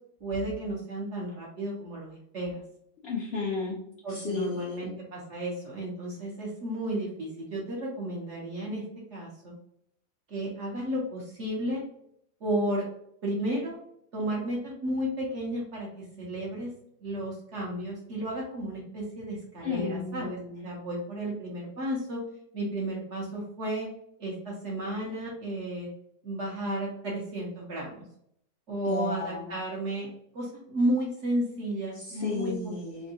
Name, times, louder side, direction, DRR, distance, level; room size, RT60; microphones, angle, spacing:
voice 1, 0.2-2.6 4.0-8.8 9.1-9.5 10.3-11.8 12.4-12.9 13.2-13.8 14.1-16.7 17.0-22.2 22.5-23.9 24.2-25.9 26.2-28.0 28.7-30.1 30.3-32.7, right 1 dB, 55° right, -3 dB, 0.9 m, -33 dB
voice 2, 3.0-3.8 4.1-4.9 19.6-20.7 28.9-29.5 31.9-33.1, left 4 dB, 75° left, -4 dB, 0.5 m, -33 dB
3.5 x 2.2 x 2.7 m, 0.72 s
omnidirectional pair, 2.0 m